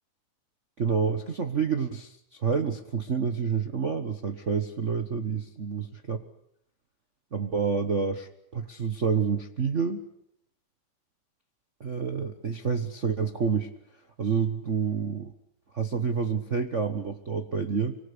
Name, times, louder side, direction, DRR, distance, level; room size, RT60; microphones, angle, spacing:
voice 1, 0.8-6.2 7.3-10.0 11.8-13.7 14.2-15.3 15.7-18.0, right 6 dB, 55° right, 6 dB, 0.8 m, -28 dB
25.5 x 25.0 x 8.3 m, 0.68 s
omnidirectional pair, 3.3 m